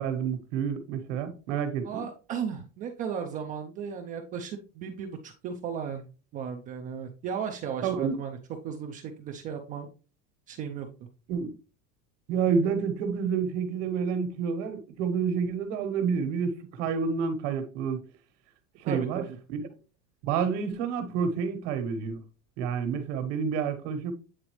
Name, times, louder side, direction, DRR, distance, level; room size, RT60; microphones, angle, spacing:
voice 1, 0.0-2.0 7.8-8.1 11.3-11.5 12.3-18.0 18.8-19.2 19.5-19.7 20.2-22.2 22.6-24.1, right 6 dB, 70° right, 1.3 m, -29 dB
voice 2, 1.8-8.4 8.6-9.9 10.5-10.9 18.8-19.4, right 7 dB, 20° right, 0.3 m, -35 dB
8.7 x 3.9 x 3.1 m
cardioid pair, 170°, 39 cm